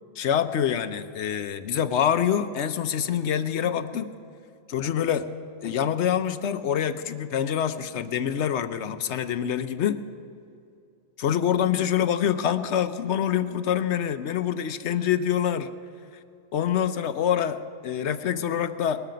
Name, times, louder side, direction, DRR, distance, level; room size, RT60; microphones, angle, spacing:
voice 1, 0.2-4.1 4.7-5.3 5.6-10.0 11.2-15.7 16.5-19.0, left 9 dB, 70° left, 11 dB, 1.0 m, -26 dB
20.0 x 13.5 x 5.1 m, 2.5 s
omnidirectional pair, 1.3 m